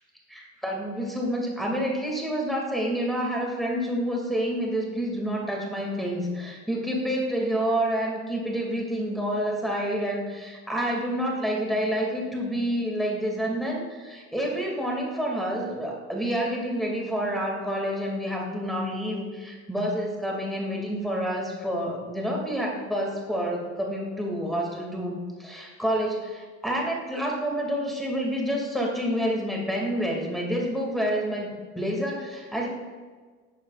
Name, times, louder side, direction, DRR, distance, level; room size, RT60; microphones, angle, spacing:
voice 1, 0.3-31.5 31.8-32.7, equal, ahead, -2 dB, 2.2 m, -28 dB
11.5 x 6.4 x 2.4 m, 1.5 s
hypercardioid pair, 70°, 42 cm